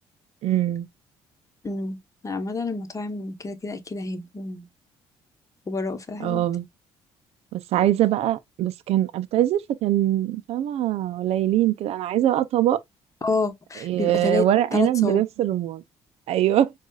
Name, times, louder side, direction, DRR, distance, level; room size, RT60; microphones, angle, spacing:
voice 1, 0.4-0.9 6.2-6.7 7.5-12.8 13.8-15.8 16.3-16.7, right 12 dB, 70° right, 0.5 m, -22 dB
voice 2, 1.6-2.0 2.2-4.7 5.7-6.5 13.2-15.2, left 3 dB, 30° left, 1.0 m, -29 dB
6.2 x 2.4 x 2.3 m
supercardioid pair, 70°, 11 cm